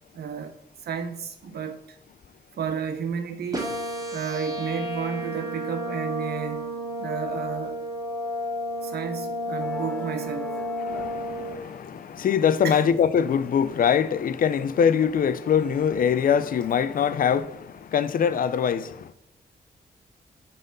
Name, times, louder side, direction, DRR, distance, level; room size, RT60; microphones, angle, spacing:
voice 1, 0.1-0.5 0.8-2.0 2.6-3.7 4.1-7.8 8.8-10.6 12.6-12.8, right 7 dB, 80° right, 1.1 m, -32 dB
sound 1, 3.5-11.5, equal, 20° right, 2.1 m, -32 dB
Musical instrument, 9.6-17.4, left 1 dB, 5° left, 1.5 m, -46 dB
voice 2, 10.8-19.1, left 7 dB, 60° left, 0.5 m, -23 dB
9.2 x 4.0 x 5.4 m
wide cardioid pair, 110°, 16 cm